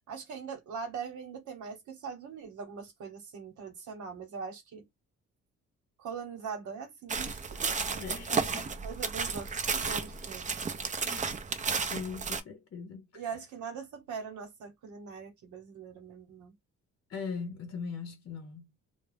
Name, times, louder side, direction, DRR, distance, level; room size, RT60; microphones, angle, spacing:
voice 1, 0.1-4.9 6.0-7.7 8.3-10.4 13.1-16.5, right 6 dB, 75° right, 1.0 m, -42 dB
sound 1, 7.1-12.4, right 5 dB, 25° right, 0.4 m, -33 dB
voice 2, 8.0-8.7 11.0-11.4 11.8-13.2 17.1-18.7, left 5 dB, 45° left, 0.7 m, -40 dB
2.3 x 2.1 x 3.2 m
cardioid pair, 90°, 30 cm